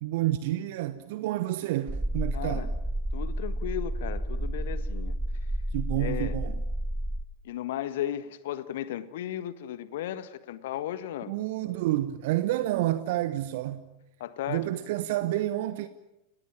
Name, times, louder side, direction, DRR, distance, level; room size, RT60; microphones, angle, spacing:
voice 1, 0.0-2.7 5.7-6.5 11.3-13.9 14.5-15.9, right 15 dB, 50° right, 1.1 m, -29 dB
sound 1, 1.9-7.2, right 1 dB, 5° right, 1.1 m, -31 dB
voice 2, 2.3-2.7 3.1-5.2 5.4-5.5 6.0-6.4 7.4-11.3 14.2-14.7, left 11 dB, 55° left, 1.5 m, -35 dB
30.0 x 18.5 x 8.8 m
figure-of-eight pair, 90°, 0 cm